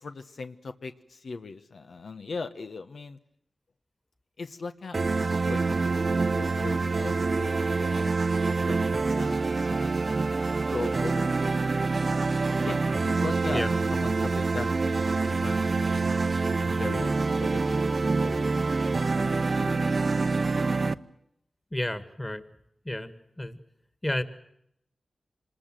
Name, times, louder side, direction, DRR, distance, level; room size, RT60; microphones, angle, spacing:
voice 1, 0.0-3.2 4.4-8.2 8.5-11.6 12.6-13.6 13.9-15.0 15.3-16.3 16.6-18.5 19.1-20.0, left 4 dB, 75° left, 7 dB, 1.2 m, -40 dB
sound 1, 4.9-20.9, right 3 dB, 55° right, 0.8 m, -26 dB
voice 2, 21.7-22.4 22.8-23.6 24.0-24.2, left 1 dB, 15° left, 11 dB, 2.0 m, -31 dB
26.0 x 20.5 x 7.7 m, 0.76 s
wide cardioid pair, 70°, 0 cm